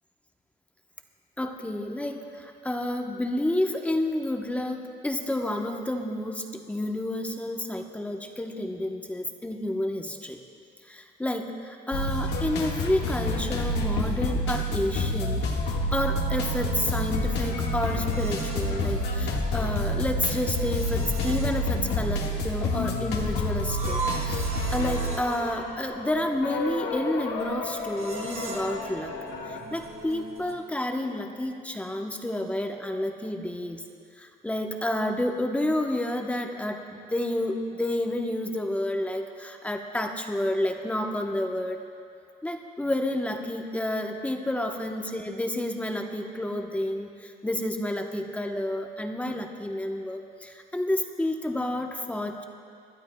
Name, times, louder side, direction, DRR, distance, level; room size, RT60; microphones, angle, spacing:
voice 1, 1.4-10.4 10.9-15.4 15.9-24.0 24.2-29.1 29.7-33.8 34.2-41.8 42.4-52.4, left 1 dB, 10° left, 3 dB, 1.0 m, -30 dB
sound 1, 11.9-29.6, left 1 dB, 80° left, 1.6 m, -29 dB
sound 2, 16.4-30.5, right 3 dB, 40° right, 2.5 m, -41 dB
26.0 x 12.0 x 2.3 m, 2.4 s
cardioid pair, 110°, 17 cm